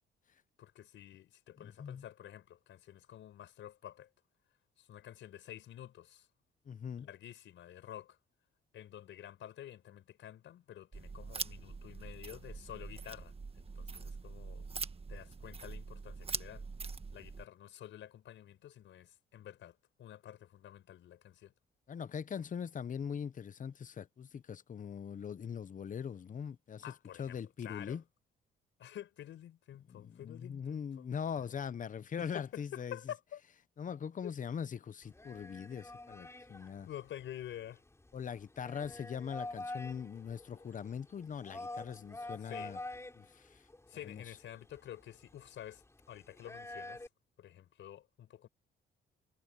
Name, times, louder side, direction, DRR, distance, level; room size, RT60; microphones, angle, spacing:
voice 1, 0.6-4.1 4.8-6.3 7.0-8.2 8.7-14.7 15.1-16.6 17.1-21.5 26.8-28.0 28.8-31.6 32.2-33.4 34.2-34.3 36.8-37.8 42.4-42.8 43.9-45.8 46.1-47.1 47.4-48.5, left 11 dB, 75° left, 5.1 m, -49 dB
voice 2, 1.6-2.0 6.7-7.1 21.9-26.8 27.2-28.0 29.9-33.0 33.8-36.9 38.1-42.8 43.2-43.6 44.0-44.2, left 7 dB, 40° left, 0.9 m, -41 dB
sound 1, 10.9-17.5, right 4 dB, 30° right, 1.5 m, -43 dB
sound 2, 35.0-47.1, left 2 dB, 15° left, 7.8 m, -48 dB
cardioid pair, 90°, 20 cm